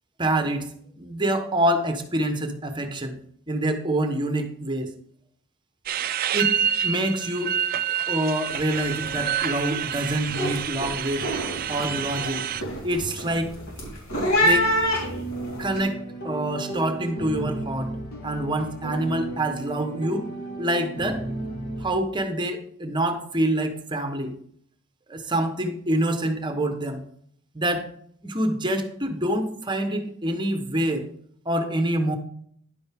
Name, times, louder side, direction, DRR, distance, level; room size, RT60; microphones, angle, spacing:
voice 1, 0.2-0.7 1.0-3.2 3.5-4.9 6.3-7.6 8.1-11.3 11.7-12.5 12.8-13.5 14.4-14.7 15.6-17.9 18.2-20.3 20.6-21.2 21.8-24.3 25.1-27.0 27.5-27.9 28.2-31.1 31.4-32.2, right 1 dB, 20° right, 7 dB, 0.9 m, -26 dB
sound 1, 5.9-12.6, right 9 dB, 45° right, 0.4 m, -28 dB
sound 2, 8.5-8.7 9.0-9.4 9.8-15.8, equal, 65° left, 3.6 m, -27 dB
sound 3, 14.3-21.9, right 2 dB, 50° left, 1.5 m, -34 dB
10.5 x 7.8 x 3.4 m, 0.65 s
head